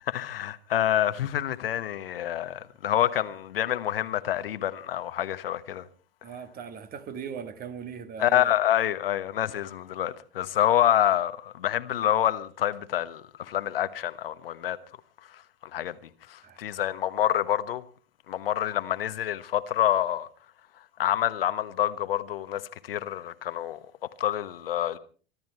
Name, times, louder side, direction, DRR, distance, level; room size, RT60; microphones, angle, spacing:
voice 1, 0.1-5.8 8.2-14.8 15.7-15.9 16.3-17.8 18.3-20.3 21.0-23.8 24.2-25.0, left 11 dB, 60° left, 1.2 m, -27 dB
voice 2, 6.2-8.5 16.4-16.6, right 7 dB, 30° right, 1.7 m, -39 dB
24.5 x 12.5 x 4.4 m
figure-of-eight pair, 85°, 32 cm